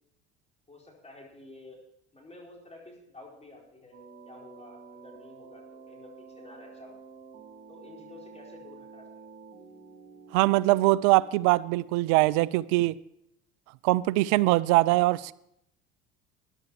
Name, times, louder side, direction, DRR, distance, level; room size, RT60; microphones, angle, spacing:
voice 1, 0.7-1.8 2.1-4.0 4.3-7.0 7.7-9.2, left 2 dB, 20° left, 4.5 m, -50 dB
sound 1, 3.9-11.5, right 5 dB, 50° right, 2.9 m, -50 dB
voice 2, 10.3-13.0 13.8-15.3, right 19 dB, 65° right, 0.5 m, -22 dB
13.5 x 11.0 x 4.9 m
hypercardioid pair, 70°, 31 cm